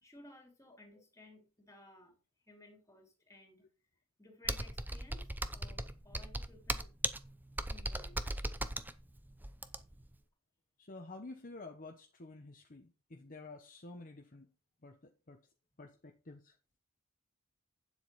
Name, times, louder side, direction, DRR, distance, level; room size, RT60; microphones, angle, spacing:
voice 1, 0.0-2.2 2.4-3.7 4.2-6.9 7.7-8.3, left 2 dB, 15° left, 3.3 m, -58 dB
Computer keyboard, 4.5-10.1, right 1 dB, 10° right, 0.6 m, -38 dB
voice 2, 10.8-14.5 14.8-15.4 15.8-16.6, left 2 dB, 40° left, 1.1 m, -50 dB
9.1 x 7.8 x 4.2 m
head